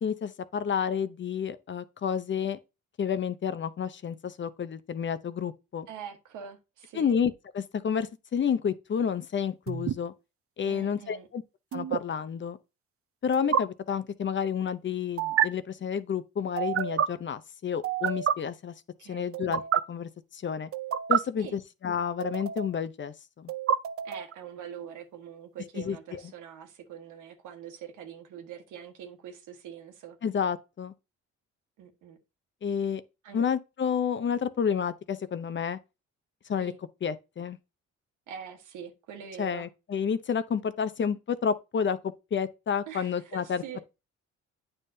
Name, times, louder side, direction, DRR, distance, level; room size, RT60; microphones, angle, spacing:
voice 1, 0.0-2.6 3.0-5.9 6.9-10.1 10.6-11.4 11.7-12.6 13.2-18.7 19.1-19.6 19.9-20.7 21.1-23.5 25.8-26.2 30.2-30.9 32.6-33.0 33.3-35.8 36.5-36.7 37.0-37.6 39.4-43.8, left 7 dB, 40° left, 0.7 m, -30 dB
voice 2, 5.9-7.2 10.6-11.3 19.0-19.3 21.4-21.6 24.0-30.2 31.8-32.2 33.2-33.5 36.6-36.8 38.3-39.7 42.9-43.8, right 8 dB, 85° right, 1.4 m, -44 dB
sound 1, 9.7-9.9 11.7-12.0 13.3-13.6 15.2-15.5 16.6-17.1 17.8-18.3 19.3-19.8 20.7-21.2 22.2-22.8 23.5-24.3, right 9 dB, 50° right, 0.6 m, -28 dB
9.0 x 5.5 x 2.8 m
cardioid pair, 90°, 30 cm